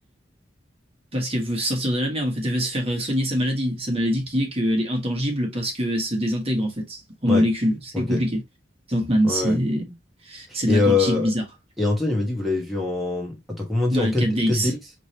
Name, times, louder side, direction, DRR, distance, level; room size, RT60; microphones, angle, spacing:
voice 1, 1.1-8.4 8.9-9.9 10.2-11.4 13.9-14.7, equal, 30° right, 1.5 m, -24 dB
voice 2, 9.2-9.6 10.5-11.3 11.8-14.7, left 3 dB, ahead, 1.3 m, -24 dB
5.1 x 3.2 x 2.9 m
head